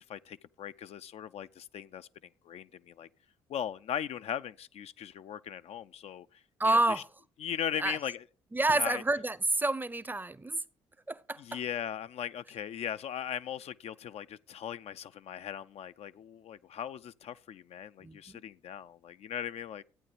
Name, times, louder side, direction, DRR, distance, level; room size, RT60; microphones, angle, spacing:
voice 1, 0.0-2.1 2.4-3.1 3.5-7.0 7.4-8.2 8.7-9.0 11.4-19.8, left 9 dB, 55° left, 0.4 m, -39 dB
voice 2, 6.6-7.1 7.8-8.0 8.5-10.6 11.1-11.6 18.0-18.4, right 2 dB, 15° right, 0.6 m, -29 dB
13.5 x 8.9 x 3.3 m
hypercardioid pair, 45°, 13 cm